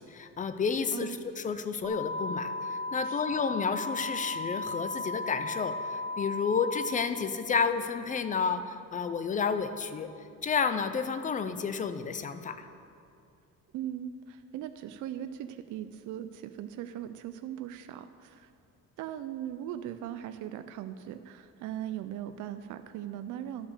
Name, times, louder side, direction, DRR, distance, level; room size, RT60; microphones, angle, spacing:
voice 1, 0.0-10.1 10.4-12.7, left 6 dB, 25° left, 10 dB, 0.4 m, -31 dB
voice 2, 0.9-1.2 3.0-3.2 13.7-18.5 19.0-23.7, right 11 dB, 70° right, 10 dB, 0.4 m, -39 dB
sound 1, 1.8-6.8, left 2 dB, 5° right, 1.0 m, -35 dB
11.5 x 5.8 x 6.5 m, 2.5 s
cardioid pair, 165°, 31 cm